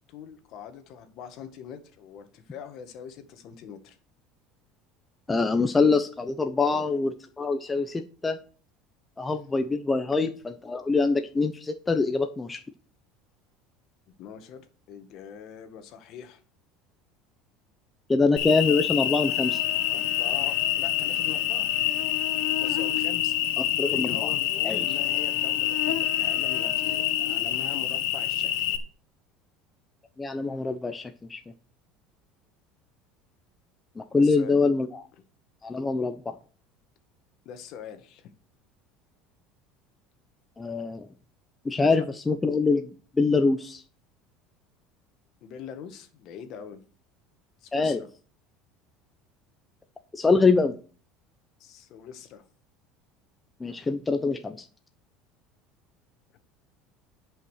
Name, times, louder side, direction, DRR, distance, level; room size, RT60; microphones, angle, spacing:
voice 1, 0.1-4.0 6.7-6.8 9.2-9.3 10.2-10.3 14.2-16.4 19.9-21.7 22.6-28.7 34.1-34.6 37.5-38.3 41.7-42.1 45.4-46.8 47.6-48.1 51.6-52.4, left 8 dB, 55° left, 1.9 m, -43 dB
voice 2, 5.3-8.4 9.2-10.3 10.7-12.6 18.1-19.6 23.8-24.3 24.6-24.8 30.2-31.4 34.0-35.0 35.6-36.3 40.6-41.1 41.6-42.9 43.2-43.8 47.7-48.0 50.1-50.7 53.6-54.6, left 4 dB, 15° left, 0.8 m, -24 dB
Cricket, 18.4-28.8, left 12 dB, 75° left, 1.4 m, -26 dB
10.5 x 5.7 x 6.6 m
supercardioid pair, 120°, 0 cm